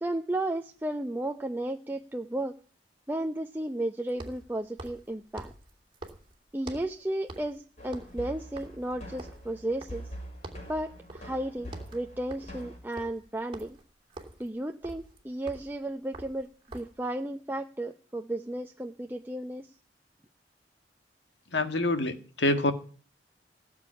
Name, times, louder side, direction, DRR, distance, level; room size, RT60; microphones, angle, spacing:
voice 1, 0.0-2.6 3.1-5.5 6.5-10.1 10.7-13.8 14.4-19.7, right 1 dB, 10° right, 0.7 m, -34 dB
sound 1, 0.8-0.9 4.1-7.0 7.3-7.6 7.9-10.2 10.4-10.7 11.1-11.4 11.6-17.0, right 2 dB, 30° right, 2.8 m, -46 dB
sound 2, 7.8-12.8, equal, 40° left, 6.1 m, -44 dB
voice 2, 21.5-22.7, left 2 dB, 90° left, 1.8 m, -26 dB
17.5 x 7.2 x 9.8 m
head